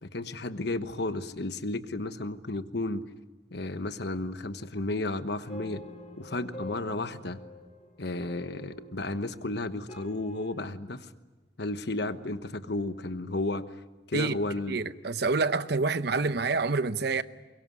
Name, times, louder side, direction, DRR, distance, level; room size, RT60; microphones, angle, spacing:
voice 1, 0.0-3.1 3.5-5.8 6.2-7.4 8.0-11.1 11.6-13.7 14.1-14.8, left 2 dB, 60° left, 1.2 m, -33 dB
sound 1, 5.5-10.5, left 1 dB, 35° left, 5.7 m, -46 dB
voice 2, 14.7-17.2, right 4 dB, 60° right, 0.8 m, -27 dB
23.5 x 22.5 x 9.7 m
head